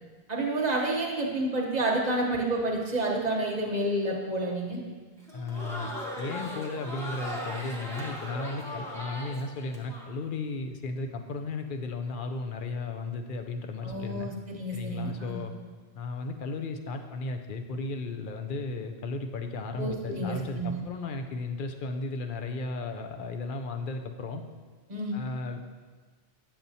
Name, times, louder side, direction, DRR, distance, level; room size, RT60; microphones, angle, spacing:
voice 1, 0.3-4.8 13.8-15.4 19.7-20.8 24.9-25.2, right 2 dB, 40° right, -1 dB, 1.0 m, -29 dB
Crowd, 5.2-10.0, equal, 5° left, 1.0 m, -38 dB
voice 2, 5.3-5.9 6.2-14.3 14.7-15.5 15.9-24.4 25.1-25.6, left 3 dB, 60° left, 5 dB, 0.7 m, -35 dB
8.6 x 7.4 x 2.7 m, 1.4 s
omnidirectional pair, 1.1 m